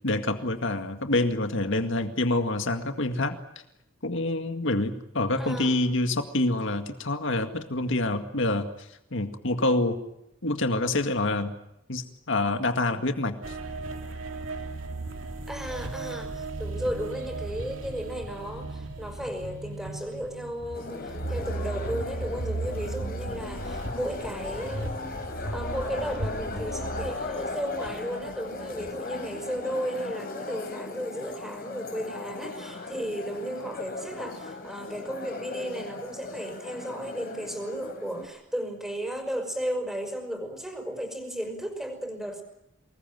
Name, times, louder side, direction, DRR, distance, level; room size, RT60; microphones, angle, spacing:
voice 1, 0.0-3.4 4.0-10.0 10.4-11.5 11.9-13.6, left 2 dB, 70° left, 7 dB, 2.0 m, -27 dB
voice 2, 5.4-5.9 15.5-25.2 25.5-42.4, equal, ahead, 5 dB, 5.5 m, -34 dB
sound 1, 13.4-28.9 29.3-29.6, right 3 dB, 70° right, 3.2 m, -37 dB
sound 2, 18.6-18.7 19.4-21.3 21.7-24.1 24.6-27.4, equal, 85° right, 5.3 m, -41 dB
sound 3, 20.7-38.3, left 3 dB, 50° left, 4.5 m, -37 dB
25.0 x 20.5 x 9.3 m, 0.82 s
head